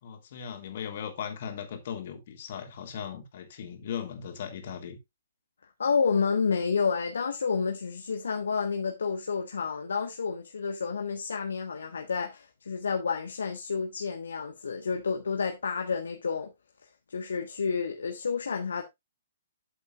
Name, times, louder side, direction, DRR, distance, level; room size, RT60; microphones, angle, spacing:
voice 1, 0.0-5.0, left 8 dB, 45° left, 3.1 m, -38 dB
voice 2, 5.8-16.5 17.1-18.8, left 5 dB, 60° left, 1.5 m, -30 dB
12.5 x 8.0 x 2.5 m
figure-of-eight pair, 120°, 0 cm